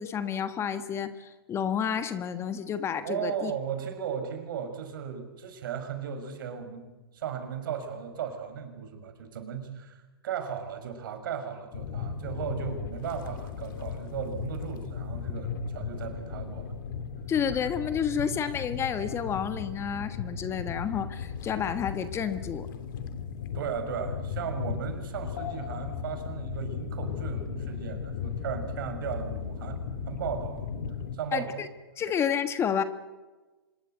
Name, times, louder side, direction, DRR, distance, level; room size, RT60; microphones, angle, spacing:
voice 1, 0.0-3.5 17.3-22.7 31.3-31.7 32.0-32.8, left 8 dB, 20° left, 11 dB, 1.5 m, -30 dB
voice 2, 3.0-16.7 23.5-29.8 30.1-30.6 31.1-31.5, right 8 dB, 60° right, 7 dB, 6.2 m, -36 dB
sound 1, 11.7-31.2, left 6 dB, 55° left, 2.7 m, -36 dB
25.5 x 22.0 x 8.0 m, 1.2 s
hypercardioid pair, 125°, 13 cm